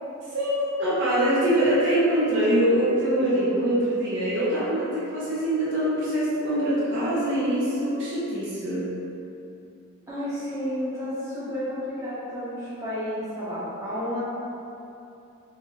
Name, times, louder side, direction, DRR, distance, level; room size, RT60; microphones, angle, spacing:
voice 1, 0.3-8.9, right 1 dB, 60° right, -8 dB, 0.7 m, -24 dB
voice 2, 10.1-14.2, equal, 15° right, -12 dB, 1.1 m, -31 dB
3.9 x 2.4 x 3.0 m, 2.8 s
head